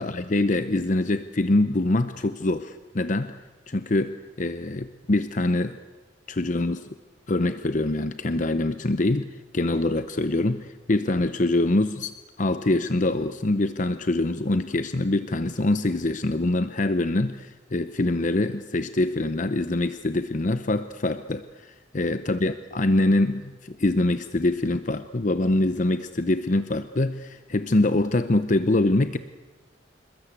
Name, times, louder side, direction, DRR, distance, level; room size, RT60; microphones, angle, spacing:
voice 1, 0.0-3.3 3.7-5.8 6.3-6.9 7.3-29.2, left 2 dB, 45° left, 11 dB, 0.8 m, -24 dB
27.0 x 21.5 x 8.2 m, 1.3 s
head